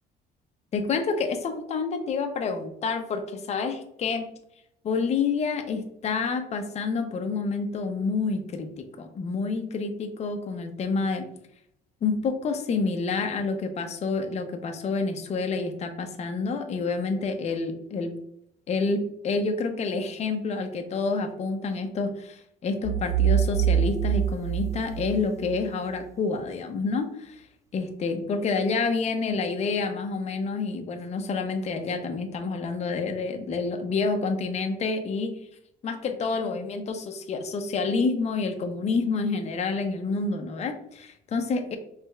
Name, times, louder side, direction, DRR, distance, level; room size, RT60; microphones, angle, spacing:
voice 1, 0.7-4.3 4.8-11.3 12.0-18.1 18.7-27.4 27.7-35.3 35.8-41.8, left 4 dB, 40° left, 5 dB, 0.6 m, -28 dB
sound 1, 22.8-25.7, right 9 dB, 20° right, 0.4 m, -25 dB
4.7 x 3.3 x 2.3 m, 0.76 s
cardioid pair, 110°, 17 cm